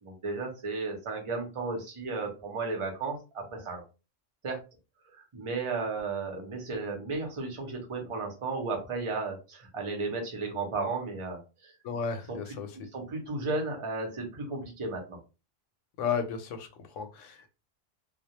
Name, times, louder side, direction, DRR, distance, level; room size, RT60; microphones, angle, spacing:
voice 1, 0.0-3.8 4.4-4.6 5.1-11.7 12.3-12.4 12.7-15.2, right 3 dB, 35° right, 1 dB, 0.6 m, -34 dB
voice 2, 11.8-12.8 16.0-17.5, left 6 dB, 85° left, 7 dB, 0.9 m, -34 dB
2.3 x 2.1 x 2.8 m, 0.30 s
omnidirectional pair, 1.3 m